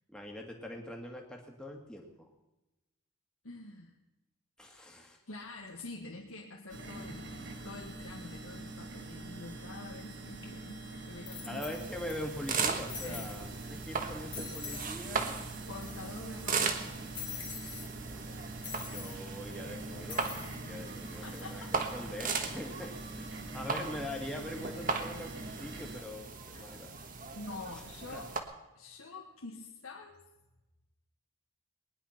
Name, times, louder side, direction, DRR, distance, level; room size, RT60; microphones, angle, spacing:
voice 1, 0.1-2.3 4.6-5.2 11.4-15.4 16.3-16.9 18.0-21.6 21.9-26.9 28.1-28.2, left 1 dB, 5° left, 1 dB, 2.0 m, -43 dB
voice 2, 3.4-3.9 5.3-10.8 11.1-11.6 13.0-13.3 15.7-17.0 21.2-21.8 26.5-26.9 27.3-28.3 28.8-30.2, left 2 dB, 80° left, -1 dB, 1.7 m, -46 dB
sound 1, 6.7-26.0, right 2 dB, 55° right, 2.3 m, -45 dB
sound 2, 10.4-10.5 11.3-12.1 12.4-12.5 12.9-13.4 13.8-14.0 14.3-14.9 15.2-15.3 15.5-16.2 17.1-17.9 18.6-19.2 20.1-20.6 21.1-21.4, left 6 dB, 20° left, 2.5 m, -44 dB
sound 3, 11.8-28.4, right 5 dB, 40° right, 1.4 m, -38 dB
20.5 x 10.5 x 5.8 m, 1.0 s
head